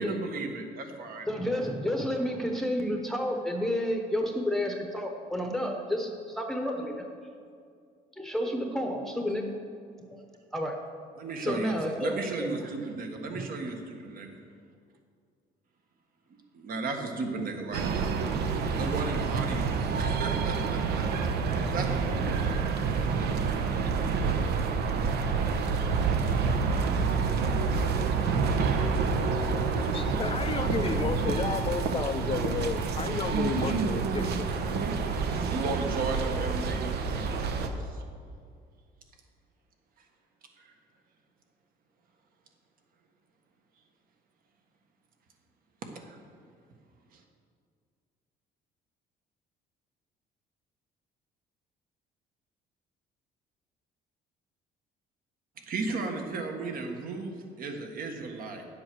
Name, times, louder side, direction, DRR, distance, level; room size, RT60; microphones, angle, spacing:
voice 1, 0.0-1.3 11.2-14.4 16.5-18.1 18.7-21.3 21.7-22.7 35.2-38.0 40.6-40.7 46.0-46.2 47.1-47.2 55.6-58.7, right 3 dB, 60° right, 3 dB, 1.6 m, -35 dB
voice 2, 1.3-7.0 8.2-9.5 10.5-10.8 11.4-12.1 12.4-12.5 13.3-13.4, equal, ahead, 2 dB, 0.9 m, -30 dB
sound 1, 17.7-37.7, right 5 dB, 75° right, 0.9 m, -28 dB
voice 3, 29.8-34.5, left 6 dB, 35° left, 11 dB, 0.5 m, -32 dB
10.5 x 7.7 x 6.1 m, 2.2 s
cardioid pair, 110°, 17 cm